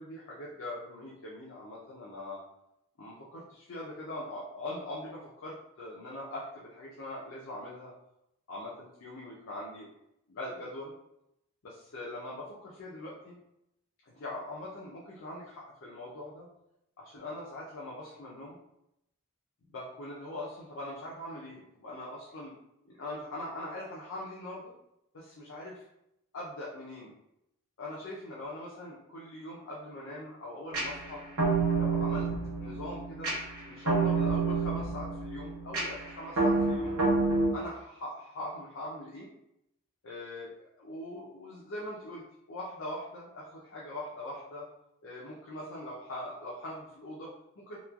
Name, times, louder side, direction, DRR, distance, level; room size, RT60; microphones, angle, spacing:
voice 1, 0.0-2.4 3.0-7.9 8.5-9.9 10.3-10.9 11.6-13.4 14.1-16.5 17.0-18.6 19.7-22.5 22.8-24.7 25.1-25.8 26.3-27.1 27.8-31.2 31.8-32.3 32.6-33.3 33.7-36.9 37.5-39.3 40.0-44.7 45.0-47.8, left 1 dB, 65° left, -5 dB, 0.4 m, -42 dB
sound 1, 30.7-37.5, right 3 dB, 90° right, 0.8 m, -29 dB
3.0 x 2.1 x 2.2 m, 0.82 s
head